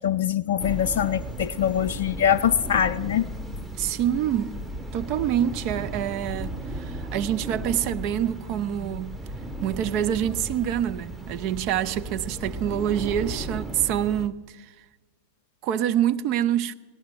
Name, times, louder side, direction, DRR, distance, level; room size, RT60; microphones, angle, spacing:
voice 1, 0.0-3.3, left 9 dB, 55° left, 0.4 m, -23 dB
sound 1, 0.6-14.3, right 1 dB, 5° right, 0.9 m, -35 dB
voice 2, 3.8-4.6 4.9-9.2 9.6-14.7 15.6-16.7, right 10 dB, 40° right, 0.5 m, -26 dB
17.5 x 11.0 x 6.8 m
figure-of-eight pair, 90°, 0 cm